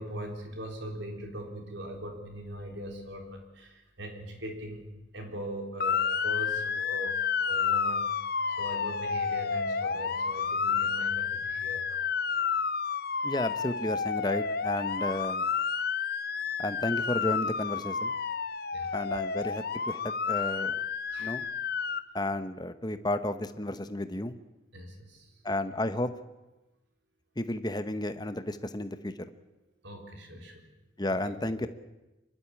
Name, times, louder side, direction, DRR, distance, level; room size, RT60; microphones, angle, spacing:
voice 1, 0.0-8.1 8.5-12.1 18.7-18.9 21.1-21.3 24.7-25.3 29.8-30.7 31.1-31.3 31.6-31.7, right 1 dB, 65° right, 3 dB, 3.9 m, -41 dB
Motor vehicle (road) / Siren, 5.8-22.0, left 6 dB, 50° left, 0.8 m, -30 dB
voice 2, 13.2-15.5 16.6-18.1 18.9-20.8 21.2-21.4 22.1-24.3 25.4-26.1 27.4-29.1 31.0-31.7, left 1 dB, 20° left, 10 dB, 0.9 m, -32 dB
26.0 x 12.0 x 9.7 m, 1.0 s
head